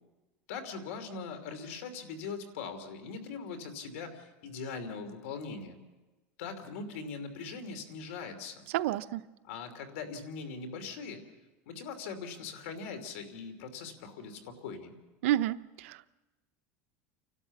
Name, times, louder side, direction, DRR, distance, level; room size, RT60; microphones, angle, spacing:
voice 1, 0.5-5.8 6.4-8.7 9.4-11.2 11.7-14.9, left 5 dB, 85° left, 2.9 m, -41 dB
voice 2, 8.7-9.2 15.2-16.2, right 13 dB, 85° right, 0.7 m, -30 dB
29.5 x 12.5 x 7.2 m
supercardioid pair, 145°, 7 cm